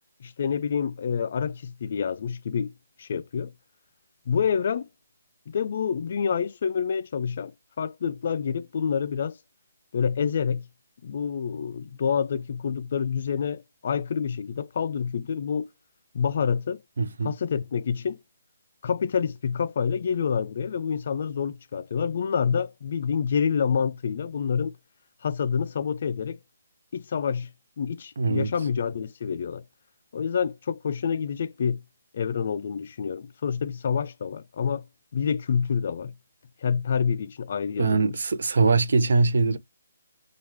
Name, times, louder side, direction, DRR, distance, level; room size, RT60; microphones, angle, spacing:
voice 1, 0.2-2.7 3.0-3.5 4.3-4.9 5.5-9.4 9.9-10.6 11.0-15.7 16.1-16.8 17.2-18.2 18.8-24.8 25.2-26.4 26.9-27.5 27.8-29.6 30.1-31.8 32.1-34.8 35.1-36.1 36.6-38.2, left 6 dB, 45° left, 0.3 m, -27 dB
voice 2, 17.0-17.3 28.2-28.5 37.8-39.6, right 4 dB, 65° right, 0.5 m, -22 dB
3.0 x 2.3 x 3.2 m
hypercardioid pair, 170°, 0 cm